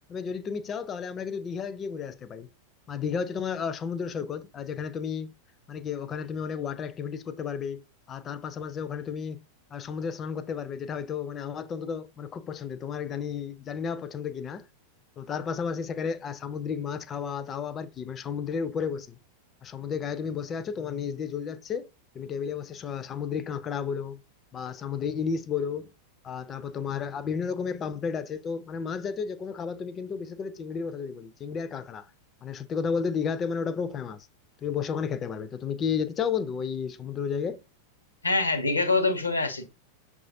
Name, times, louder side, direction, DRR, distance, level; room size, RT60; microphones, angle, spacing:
voice 1, 0.1-2.5 2.9-5.3 5.7-7.8 8.1-9.4 9.7-14.7 15.2-19.2 19.6-21.9 22.1-24.2 24.5-25.9 26.2-32.1 32.4-34.3 34.6-37.6, left 6 dB, 25° left, 0.3 m, -32 dB
voice 2, 38.2-39.7, left 3 dB, 80° left, 0.7 m, -25 dB
6.1 x 2.4 x 2.5 m
figure-of-eight pair, 90°, 0 cm